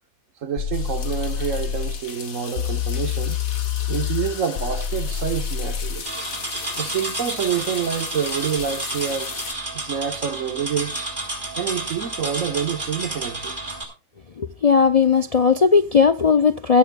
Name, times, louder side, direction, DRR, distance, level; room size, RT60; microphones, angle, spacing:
voice 1, 0.4-3.4 3.9-6.1 6.7-9.3 9.7-11.0 11.5-13.6, right 8 dB, 70° right, 1.5 m, -27 dB
sound 1, 0.6-2.0 2.6-6.0, left 8 dB, 65° left, 1.0 m, -27 dB
sound 2, 0.7-9.5, left 6 dB, 85° left, 1.8 m, -36 dB
sound 3, 6.1-13.8, right 2 dB, 35° right, 4.0 m, -31 dB
voice 2, 14.4-16.8, left 5 dB, 45° left, 0.4 m, -17 dB
16.5 x 13.0 x 2.3 m
omnidirectional pair, 1.4 m